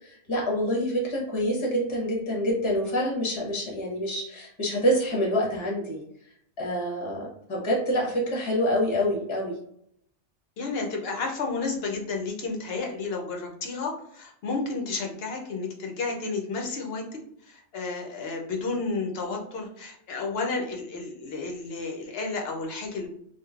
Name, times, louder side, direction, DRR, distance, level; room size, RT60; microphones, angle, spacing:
voice 1, 0.0-6.0 6.6-9.6, equal, 25° left, -2 dB, 0.7 m, -27 dB
voice 2, 10.6-17.0 17.4-23.1, left 3 dB, 60° left, 1 dB, 0.7 m, -31 dB
3.0 x 2.4 x 2.3 m, 0.70 s
omnidirectional pair, 1.3 m